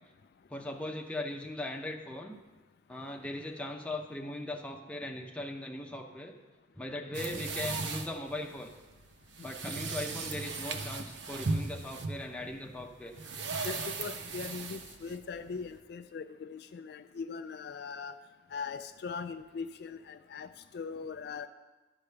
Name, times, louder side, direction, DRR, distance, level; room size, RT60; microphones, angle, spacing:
voice 1, 0.5-2.4 2.9-6.3 6.7-8.7 9.4-13.2, left 1 dB, 5° left, 1 dB, 0.7 m, -39 dB
sound 1, 7.1-15.8, right 3 dB, 70° right, 0.7 m, -37 dB
voice 2, 13.6-18.1 18.5-20.5 20.7-21.5, left 5 dB, 55° left, 9 dB, 0.3 m, -40 dB
11.5 x 5.0 x 6.8 m, 1.2 s
head